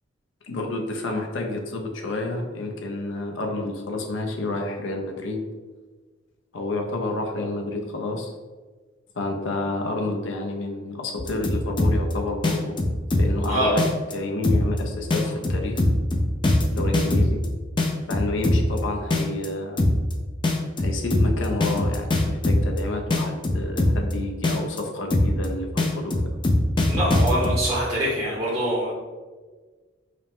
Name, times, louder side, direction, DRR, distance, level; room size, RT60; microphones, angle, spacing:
voice 1, 0.4-5.4 6.5-8.4 9.2-12.8 13.2-13.8 14.1-15.9 16.7-17.4 18.1-19.8 20.8-26.1, left 2 dB, 70° left, 2 dB, 0.6 m, -29 dB
sound 1, 11.2-12.1 12.4-13.4 13.8-14.1 14.4-14.8 15.1-17.4 17.8-18.8 19.1-19.5 19.8-20.1 20.4-22.8 23.1-24.1 24.4-24.8 25.1-25.4 25.8-27.6, left 2 dB, 25° left, 0.4 m, -21 dB
voice 2, 26.9-28.9, right 1 dB, 30° right, -7 dB, 0.8 m, -24 dB
4.9 x 2.1 x 3.5 m, 1.4 s
head